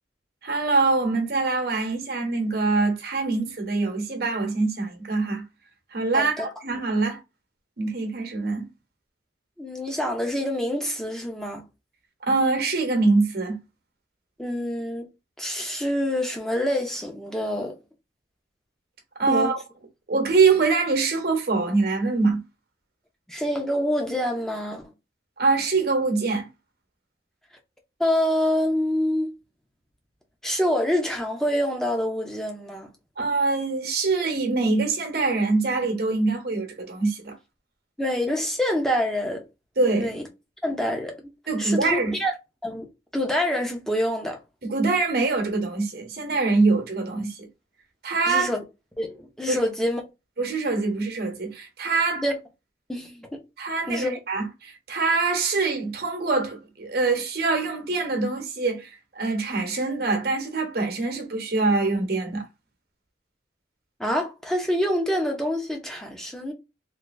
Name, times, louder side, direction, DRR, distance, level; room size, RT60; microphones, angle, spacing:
voice 1, 0.4-5.4 5.9-7.2 7.8-8.7 12.2-13.6 19.2-19.6 20.1-22.4 25.4-26.5 33.2-37.4 39.8-40.1 41.5-42.1 44.6-47.5 48.0-48.5 49.5-49.6 50.4-52.2 53.6-58.9 59.1-62.5, right 3 dB, 60° right, 1.1 m, -24 dB
voice 2, 6.1-6.5 9.6-11.6 14.4-15.1 15.4-17.7 19.3-19.5 23.3-24.9 28.0-29.3 30.4-32.9 38.0-39.4 39.9-40.3 40.6-41.2 41.6-42.3 42.6-42.9 43.1-44.4 48.2-48.6 49.0-50.0 52.2-52.4 52.9-53.4 53.9-54.2 64.0-66.5, left 1 dB, 5° left, 0.8 m, -26 dB
3.3 x 2.8 x 2.6 m
head